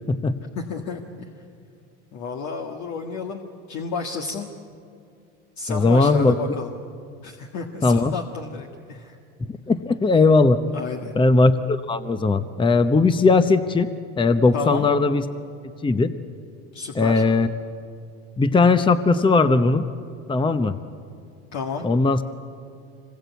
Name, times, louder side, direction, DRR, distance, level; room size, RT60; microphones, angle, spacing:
voice 1, 0.6-1.3 2.1-4.5 5.6-6.7 7.2-9.2 10.7-11.1 14.5-14.9 16.7-17.2 21.5-21.9, left 5 dB, 60° left, 2 dB, 1.8 m, -31 dB
voice 2, 5.7-6.4 7.8-8.1 9.7-10.6 11.1-13.9 14.2-15.2 15.8-16.1 16.9-17.5 18.4-19.8 20.3-20.8 21.8-22.2, left 3 dB, 15° left, 11 dB, 0.9 m, -18 dB
25.5 x 20.5 x 8.2 m, 2.4 s
supercardioid pair, 95°, 32 cm